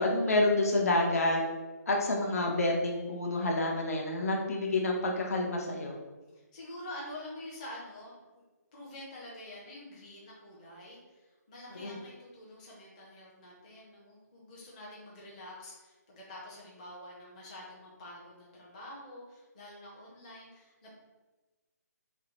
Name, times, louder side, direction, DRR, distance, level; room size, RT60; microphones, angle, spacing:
voice 1, 0.0-1.4 1.9-6.0 11.8-11.9, left 2 dB, 60° left, 0 dB, 0.9 m, -28 dB
voice 2, 6.5-8.4 8.7-20.9, left 1 dB, 25° left, -5 dB, 0.8 m, -47 dB
5.6 x 2.1 x 3.1 m, 1.2 s
hypercardioid pair, 170°, 9 cm